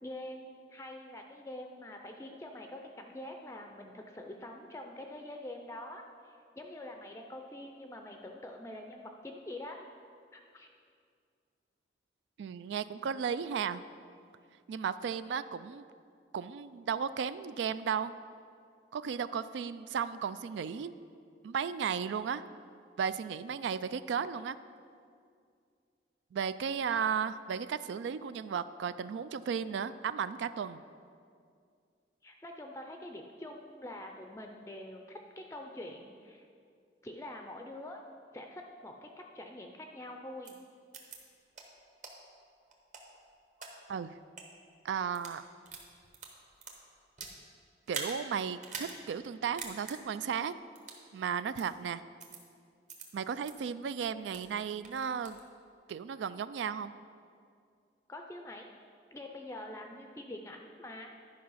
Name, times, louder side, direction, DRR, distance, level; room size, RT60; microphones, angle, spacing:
voice 1, 0.0-9.8 10.3-10.7 32.2-36.5 37.0-38.0 38.3-40.6 58.1-58.7 59.1-61.1, left 1 dB, 15° left, 3 dB, 0.4 m, -45 dB
voice 2, 12.4-13.8 14.7-15.8 16.3-18.1 18.9-20.9 21.4-22.4 23.0-24.6 26.3-30.8 43.9-44.1 44.8-45.4 47.9-50.5 51.1-52.0 53.1-55.4 55.9-56.9, right 7 dB, 90° right, 14 dB, 0.3 m, -34 dB
sound 1, 40.4-40.5 40.9-41.2 41.5-41.6 42.0-42.1 42.7-43.7 44.2-44.4 45.0-45.4 45.7-47.4 47.8-48.2 48.6-48.9 49.2-49.3 49.6-50.0 50.8-51.0 51.6-51.7 52.2-52.4 52.9-53.0 53.4-53.5 54.0-54.5 54.8-55.4, right 5 dB, 45° right, 1.1 m, -43 dB
11.0 x 5.1 x 5.5 m, 2.3 s
head